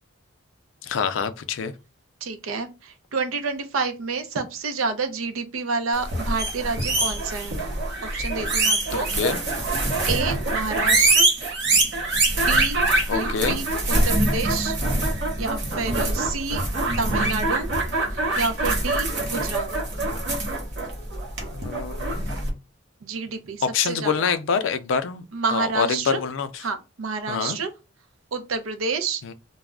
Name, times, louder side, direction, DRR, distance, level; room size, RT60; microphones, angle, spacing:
voice 1, 0.8-1.7 8.9-9.4 13.1-13.6 21.5-22.6 23.7-25.2 25.5-26.6 27.3-27.6 29.2-29.3, left 6 dB, 65° left, 0.4 m, -26 dB
voice 2, 2.2-7.6 8.0-9.1 10.1-11.3 12.4-12.8 13.1-14.8 15.4-16.7 17.0-17.7 18.1-19.7 23.0-24.3 25.3-26.2 26.6-27.7 28.3-29.2, right 4 dB, 85° right, 0.5 m, -29 dB
sound 1, 6.0-22.5, right 2 dB, 55° right, 0.8 m, -24 dB
2.2 x 2.0 x 3.4 m
head